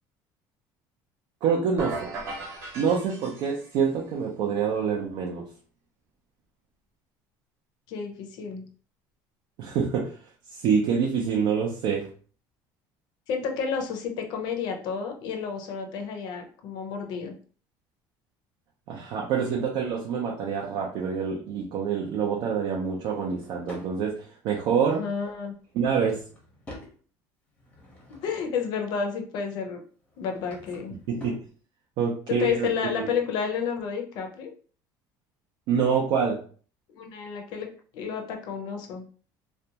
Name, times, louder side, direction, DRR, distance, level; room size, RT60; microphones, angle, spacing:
voice 1, 1.4-2.0 2.7-5.4 9.6-10.2 10.5-12.1 18.9-25.0 25.7-26.2 31.1-31.4 32.0-32.7 33.0-33.1 35.7-36.4, right 6 dB, 60° right, -1 dB, 0.5 m, -26 dB
sound 1, 1.8-3.9, right 2 dB, 35° right, 0.9 m, -36 dB
voice 2, 7.9-8.6 13.3-17.3 24.9-25.5 28.2-29.8 30.2-31.0 32.3-34.5 37.0-37.7 37.9-39.0, left 6 dB, 55° left, 4 dB, 0.6 m, -30 dB
Drawer open or close / Wood, 23.0-23.9 25.6-27.0 27.5-28.6 30.0-31.5, left 1 dB, 15° left, 0.7 m, -47 dB
2.4 x 2.2 x 2.8 m, 0.42 s
cardioid pair, 175°, 8 cm